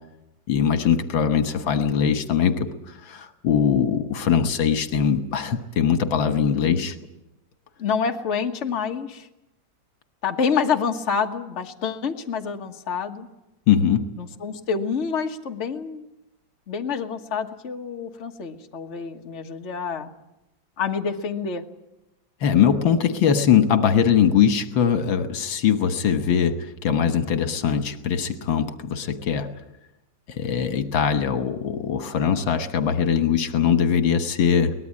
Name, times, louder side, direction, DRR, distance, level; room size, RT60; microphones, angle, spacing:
voice 1, 0.5-7.0 13.7-14.1 22.4-29.5 30.3-34.7, left 7 dB, 80° left, 8 dB, 2.0 m, -21 dB
voice 2, 7.8-9.3 10.2-13.3 14.2-16.1 16.7-20.1 20.8-21.7, left 6 dB, 40° left, 4 dB, 1.6 m, -27 dB
23.0 x 19.0 x 8.5 m, 0.92 s
omnidirectional pair, 2.1 m